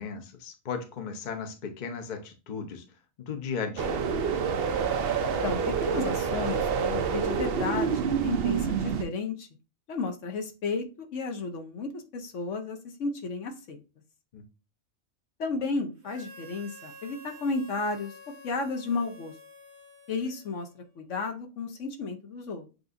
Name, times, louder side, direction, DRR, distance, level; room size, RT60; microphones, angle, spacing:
voice 1, 0.0-2.8 3.2-4.1 14.3-14.4, left 5 dB, 40° left, 0.8 m, -36 dB
sound 1, 3.8-9.0, right 6 dB, 60° right, 0.7 m, -27 dB
voice 2, 5.4-9.5 9.9-13.8 15.4-18.1 18.4-19.3 20.1-20.7 21.0-22.7, left 4 dB, 65° left, 1.1 m, -33 dB
Harmonica, 16.0-20.9, left 1 dB, 90° right, 1.6 m, -50 dB
7.7 x 2.6 x 2.5 m
omnidirectional pair, 1.4 m